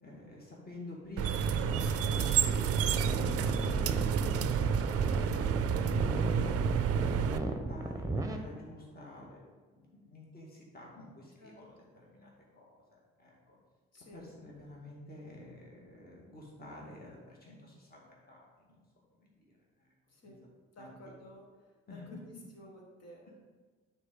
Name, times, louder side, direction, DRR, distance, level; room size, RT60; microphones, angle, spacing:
voice 1, 0.0-6.5 7.0-9.5 9.7-13.6 14.1-18.8 19.1-19.9 20.2-20.3 20.8-20.9 21.9-22.2, left 2 dB, 30° left, -3 dB, 1.9 m, -50 dB
sound 1, 1.2-7.4, right 8 dB, 50° right, 0.5 m, -30 dB
sound 2, 1.5-8.4, right 2 dB, 10° right, 0.9 m, -35 dB
voice 2, 11.4-11.9 13.9-14.3 20.1-20.4 20.7-22.2 22.5-23.4, equal, 55° left, -1 dB, 1.8 m, -54 dB
9.1 x 4.2 x 3.7 m, 1.4 s
hypercardioid pair, 45°, 31 cm